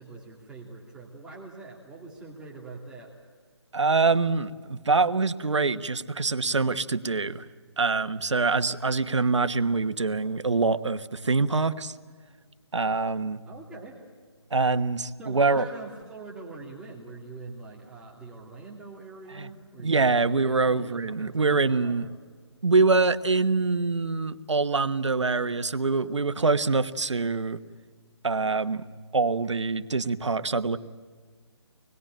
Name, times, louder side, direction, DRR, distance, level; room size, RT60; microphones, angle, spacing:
voice 1, 0.0-3.1 13.4-14.0 15.2-22.1, right 3 dB, 5° right, -3 dB, 2.6 m, -44 dB
voice 2, 3.7-7.4 7.8-11.9 12.7-13.4 14.5-15.6 19.3-19.5 19.8-22.1 22.6-27.6 28.2-28.8 29.1-30.8, right 3 dB, 90° right, 11 dB, 1.3 m, -24 dB
26.0 x 21.0 x 8.9 m, 1.5 s
hypercardioid pair, 160°, 15 cm